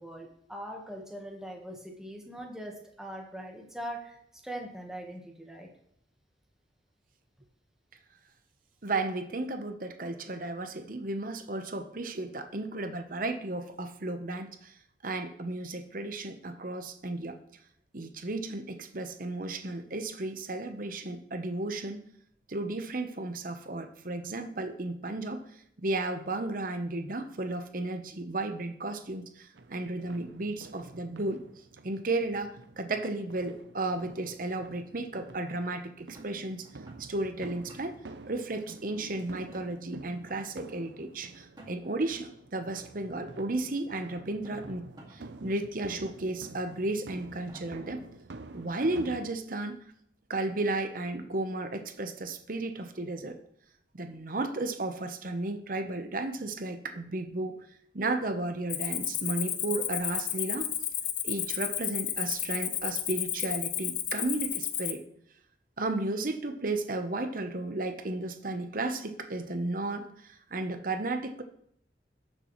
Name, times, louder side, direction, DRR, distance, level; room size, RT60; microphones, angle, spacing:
voice 1, 0.0-5.7, right 1 dB, 5° right, 1 dB, 1.3 m, -41 dB
voice 2, 8.8-14.7 15.0-17.4 17.9-22.0 22.5-25.4 25.8-31.4 31.8-32.5 32.8-36.7 37.0-38.0 38.3-48.0 48.5-49.8 50.3-53.4 53.9-57.6 57.9-60.7 61.2-65.0 65.8-71.4, right 2 dB, 50° right, 7 dB, 0.9 m, -34 dB
sound 1, 29.5-49.3, right 3 dB, 75° right, 0.7 m, -49 dB
sound 2, 36.1-37.0 37.5-38.1 38.5-39.1 39.5-39.7 40.2-40.4 41.4-42.0 43.1-43.2 44.2-45.2 45.6-45.7 46.4-46.8 47.3-47.6 48.2-48.3 48.5-49.0, right 1 dB, 25° right, 2.0 m, -53 dB
Cricket, 58.7-64.9, left 11 dB, 45° left, 0.7 m, -32 dB
18.0 x 6.8 x 3.1 m, 0.71 s
head